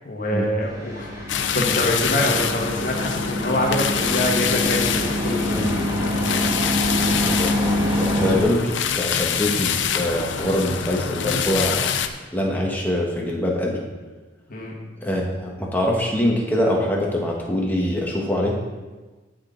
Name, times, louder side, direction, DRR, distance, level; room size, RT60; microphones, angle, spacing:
voice 1, 0.0-7.1 8.1-8.3 14.5-14.7, left 1 dB, 45° left, -1 dB, 1.6 m, -26 dB
sound 1, 0.6-8.4, left 1 dB, 20° right, 1.5 m, -25 dB
sound 2, 1.3-12.1, left 8 dB, 75° left, 0.6 m, -26 dB
voice 2, 7.1-11.8 12.3-13.8 15.0-18.6, left 1 dB, 10° left, -2 dB, 1.3 m, -24 dB
14.5 x 5.2 x 3.9 m, 1.3 s
head